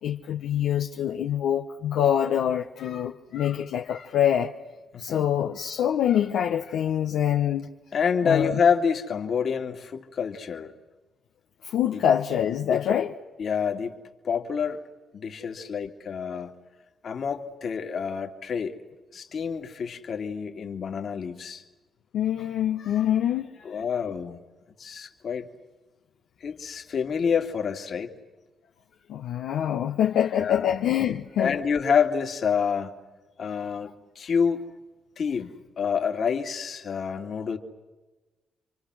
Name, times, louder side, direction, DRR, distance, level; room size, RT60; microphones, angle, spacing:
voice 1, 0.0-4.5 5.0-7.7 8.2-8.6 11.6-13.1 22.1-23.8 29.1-31.6, left 10 dB, 80° left, 1.1 m, -25 dB
voice 2, 4.9-5.3 7.9-10.7 11.9-12.0 12.6-12.8 13.4-13.9 14.2-14.8 15.1-16.5 17.0-18.7 19.1-21.6 23.6-24.4 24.8-25.5 26.4-28.1 30.3-30.6 31.4-32.9 33.4-34.7 35.2-35.5 35.8-37.6, left 6 dB, 60° left, 2.5 m, -27 dB
30.0 x 24.5 x 6.4 m
supercardioid pair, 65°, 0 cm